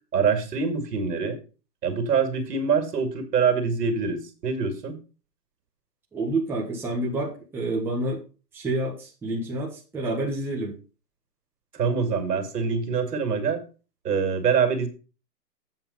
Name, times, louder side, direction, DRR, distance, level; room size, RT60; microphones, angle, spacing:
voice 1, 0.1-1.4 1.8-5.0 11.7-13.6 14.0-14.9, right 6 dB, 70° right, 7 dB, 2.5 m, -24 dB
voice 2, 6.1-8.2 8.5-10.8, right 2 dB, 5° right, -4 dB, 1.2 m, -28 dB
7.8 x 5.8 x 5.4 m, 0.34 s
hypercardioid pair, 150°, 50 cm